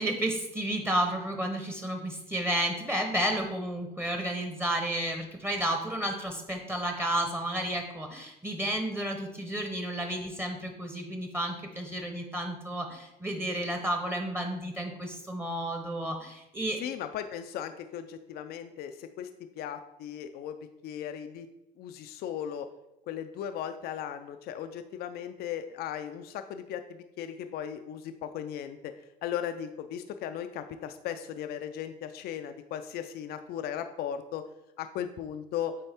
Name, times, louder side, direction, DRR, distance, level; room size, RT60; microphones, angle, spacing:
voice 1, 0.0-16.8, right 1 dB, 15° right, 3 dB, 0.9 m, -32 dB
voice 2, 16.8-19.3 19.6-20.6 20.8-21.5 21.8-22.7 23.1-28.9 29.2-34.4 34.8-35.7, left 9 dB, 70° left, 8 dB, 0.4 m, -37 dB
8.6 x 3.5 x 3.5 m, 0.91 s
cardioid pair, 110°, 17 cm